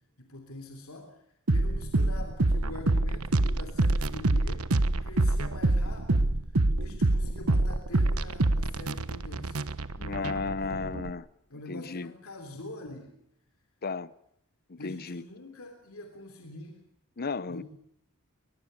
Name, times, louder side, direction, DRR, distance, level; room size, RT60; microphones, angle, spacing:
voice 1, 0.2-4.7 5.0-6.4 6.7-9.6 10.1-10.8 11.5-13.2 14.8-16.8 17.5-17.6, left 2 dB, 70° left, 3.2 m, -44 dB
sound 1, 1.5-11.1, right 2 dB, 85° right, 1.2 m, -26 dB
voice 2, 10.0-11.3 11.7-12.1 13.8-14.1 14.7-15.2 17.2-17.6, left 4 dB, 45° left, 0.8 m, -34 dB
22.5 x 22.0 x 6.8 m
head